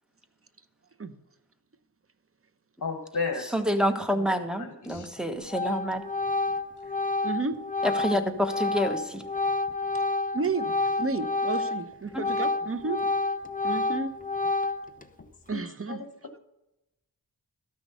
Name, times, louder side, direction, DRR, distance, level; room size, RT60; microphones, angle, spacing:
voice 1, 2.8-3.5 4.6-5.1 15.5-15.6 15.9-16.1, left 4 dB, 50° left, 5 dB, 1.2 m, -32 dB
voice 2, 3.5-6.0 7.8-9.2 12.1-12.2, equal, ahead, 7 dB, 1.4 m, -28 dB
Organ, 4.9-5.2 5.5-11.8 12.1-15.0, left 3 dB, 20° left, 0.8 m, -29 dB
voice 3, 7.2-7.5 10.3-13.0 13.6-14.1 15.5-16.0, right 4 dB, 35° right, 12 dB, 0.9 m, -31 dB
13.0 x 6.2 x 6.8 m, 0.94 s
cardioid pair, 65°, 38 cm